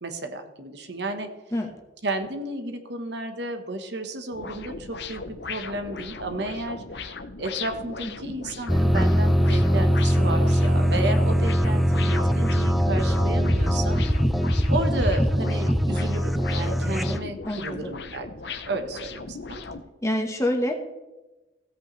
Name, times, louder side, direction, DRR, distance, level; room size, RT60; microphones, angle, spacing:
voice 1, 0.0-1.3 2.0-14.1 14.7-19.6, right 2 dB, 60° right, 6 dB, 1.2 m, -32 dB
sound 1, 4.3-19.8, left 4 dB, 60° left, 0.8 m, -38 dB
sound 2, 8.7-17.2, equal, ahead, 0.4 m, -22 dB
voice 2, 17.4-18.0 20.0-20.7, left 1 dB, 15° left, 4 dB, 1.3 m, -26 dB
16.0 x 8.5 x 3.2 m, 1.1 s
head